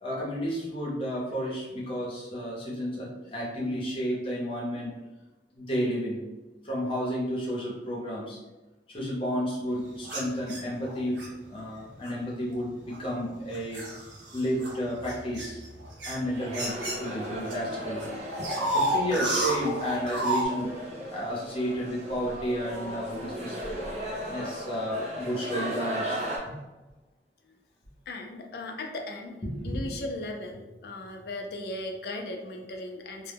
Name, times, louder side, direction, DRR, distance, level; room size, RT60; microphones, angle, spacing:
voice 1, 0.0-4.9 5.5-6.2 6.6-8.4 8.9-13.8 14.3-15.6 16.0-18.1 18.7-20.8 21.1-23.6 24.3-26.2 29.4-29.8, equal, 30° left, -5 dB, 0.7 m, -32 dB
sound 1, 10.0-11.3 12.0-12.3 12.9-17.5 17.8-20.5, right 1 dB, 80° right, 0.6 m, -31 dB
sound 2, 16.2-26.4, right 1 dB, 40° right, 0.6 m, -37 dB
voice 2, 28.1-29.3 29.6-33.3, left 2 dB, 60° left, 3 dB, 0.4 m, -37 dB
2.1 x 2.1 x 3.3 m, 1.1 s
head